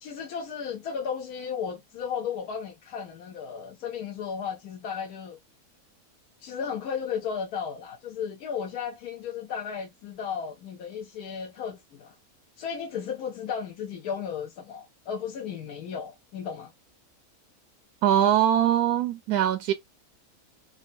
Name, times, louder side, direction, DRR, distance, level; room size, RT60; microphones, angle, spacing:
voice 1, 0.0-5.4 6.4-12.1 12.6-16.7, left 7 dB, 80° left, 1.1 m, -34 dB
voice 2, 18.0-19.7, right 10 dB, 90° right, 1.1 m, -22 dB
3.6 x 2.2 x 2.6 m
omnidirectional pair, 1.6 m